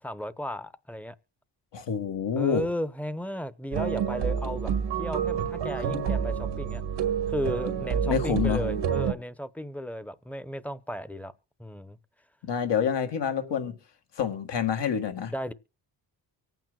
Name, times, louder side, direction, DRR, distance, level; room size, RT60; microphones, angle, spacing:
voice 1, 0.0-1.2 2.3-4.7 5.0-6.8 7.3-11.3 11.6-12.0 15.3-15.5, equal, 5° left, 0.8 m, -34 dB
voice 2, 1.7-2.6 8.0-8.6 12.4-13.7 14.2-15.3, left 7 dB, 75° left, 2.0 m, -27 dB
sound 1, 3.7-9.1, right 7 dB, 90° right, 1.7 m, -28 dB
24.5 x 9.2 x 2.3 m
cardioid pair, 75°, 43 cm